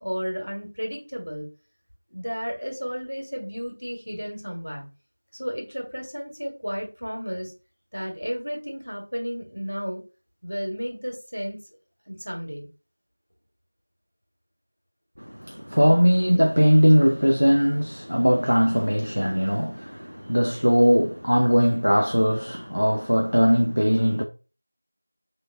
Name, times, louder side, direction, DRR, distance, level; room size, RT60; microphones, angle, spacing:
voice 1, 0.0-1.4 2.1-4.8 5.3-7.5 7.9-10.0 10.4-11.6 12.1-12.7, equal, 85° right, 1.5 m, -33 dB
voice 2, 15.2-24.2, equal, 70° right, 0.4 m, -20 dB
3.4 x 3.1 x 2.4 m
figure-of-eight pair, 180°, 0 cm